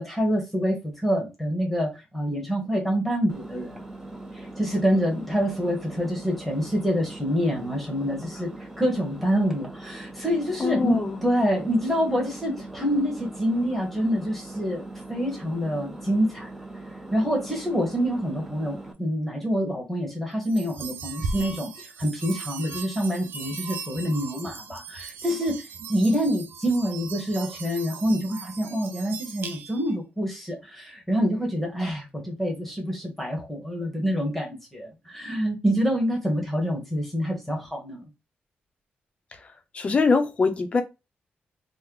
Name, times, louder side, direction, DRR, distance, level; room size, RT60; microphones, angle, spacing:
voice 1, 0.0-3.8 4.3-8.5 8.8-14.8 15.1-16.5 17.1-38.0, equal, 5° left, 1.0 m, -26 dB
Engine, 3.3-18.9, right 2 dB, 10° right, 0.6 m, -41 dB
voice 2, 10.6-11.2 39.7-40.8, left 4 dB, 35° left, 0.6 m, -23 dB
sound 1, 20.4-29.9, right 4 dB, 70° right, 0.5 m, -38 dB
3.1 x 2.1 x 3.6 m
wide cardioid pair, 145°, 4 cm